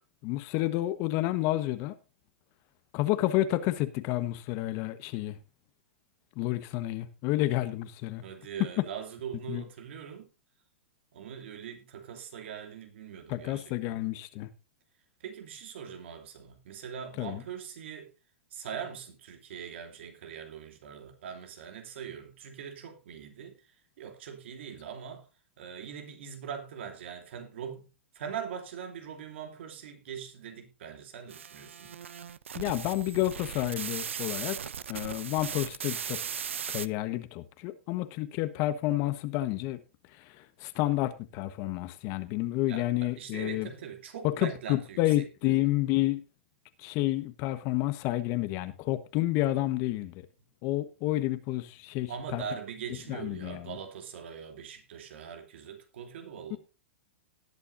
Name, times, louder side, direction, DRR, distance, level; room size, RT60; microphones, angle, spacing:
voice 1, 0.2-1.9 2.9-5.4 6.4-8.2 9.5-9.6 13.3-14.5 17.2-17.4 32.5-34.6 34.9-36.2 36.7-39.8 40.2-43.7 44.2-46.2 46.8-50.3 50.6-52.4 53.1-53.8 56.5-56.6, left 16 dB, 45° left, 1.2 m, -30 dB
voice 2, 8.2-10.3 11.1-14.0 15.2-18.1 18.5-25.3 25.6-27.9 28.1-31.9 42.7-45.0 45.4-45.6 52.1-56.6, right 7 dB, 70° right, 2.7 m, -42 dB
sound 1, 31.3-36.9, right 8 dB, 85° right, 0.6 m, -38 dB
18.5 x 8.3 x 2.6 m
hypercardioid pair, 115°, 7 cm